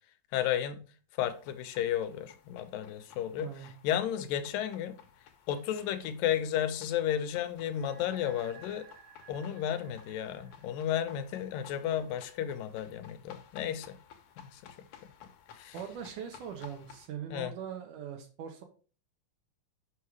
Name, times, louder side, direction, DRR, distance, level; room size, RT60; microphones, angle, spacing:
voice 1, 0.3-0.8 1.2-5.0 5.5-8.9 9.3-14.0 14.4-14.6 15.5-15.8 17.3-17.5, left 10 dB, 85° left, 2.4 m, -33 dB
sound 1, 1.3-17.1, left 8 dB, 70° left, 2.0 m, -56 dB
voice 2, 3.4-3.7 15.7-18.6, right 8 dB, 70° right, 2.5 m, -41 dB
sound 2, 7.6-12.3, right 6 dB, 85° right, 3.0 m, -57 dB
6.2 x 5.6 x 4.7 m
omnidirectional pair, 3.9 m